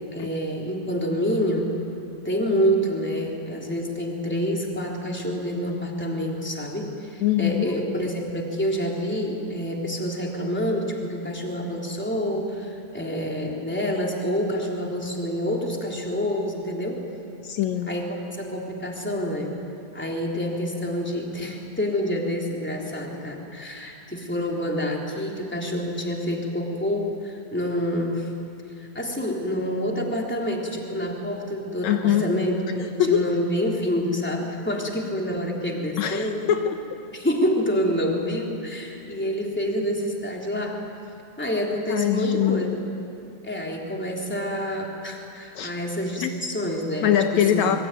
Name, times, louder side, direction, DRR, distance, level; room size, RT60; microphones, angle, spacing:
voice 1, 0.0-1.8 2.2-17.0 17.9-19.5 19.9-28.3 28.8-36.4 37.1-40.8 41.4-42.8 43.4-47.7, equal, 5° left, -1 dB, 3.2 m, -27 dB
voice 2, 7.2-7.7 17.4-17.9 31.8-32.3 32.8-33.2 36.0-36.8 41.9-42.7 45.6-45.7 46.2-46.3 47.0-47.8, left 10 dB, 75° left, 6 dB, 2.2 m, -23 dB
27.5 x 22.0 x 9.2 m, 2.6 s
omnidirectional pair, 3.5 m